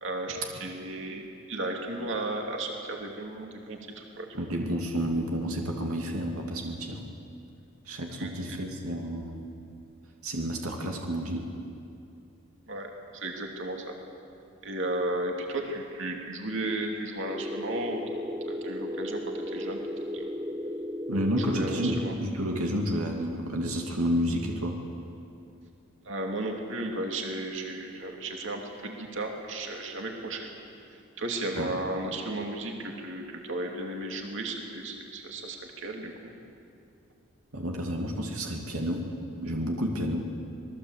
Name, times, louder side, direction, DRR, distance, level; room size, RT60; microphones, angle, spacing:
voice 1, 0.0-4.3 8.2-8.6 12.7-14.0 14.6-19.8 20.1-20.3 21.4-22.1 26.0-30.5 31.2-36.3, right 1 dB, 55° right, 1 dB, 2.8 m, -34 dB
voice 2, 4.3-7.0 7.8-9.5 10.2-11.5 21.1-24.8 31.5-31.7 37.5-39.1 39.4-40.3, equal, 80° right, 1 dB, 2.7 m, -30 dB
sound 1, 17.2-22.2, equal, 15° right, 0.5 m, -35 dB
26.0 x 20.0 x 8.2 m, 2.6 s
head